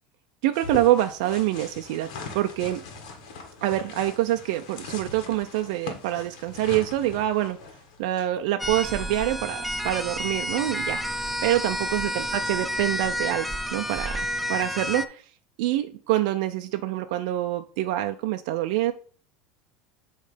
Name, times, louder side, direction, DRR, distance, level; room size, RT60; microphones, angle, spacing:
voice 1, 0.4-2.1 2.3-2.8 3.6-7.6 8.0-15.2 15.6-18.9, right 14 dB, 70° right, 6 dB, 0.5 m, -26 dB
sound 1, 0.5-15.0, left 4 dB, 75° left, 1.6 m, -43 dB
sound 2, 8.6-15.0, equal, ahead, 0.4 m, -30 dB
8.5 x 3.2 x 5.0 m, 0.43 s
supercardioid pair, 145°, 4 cm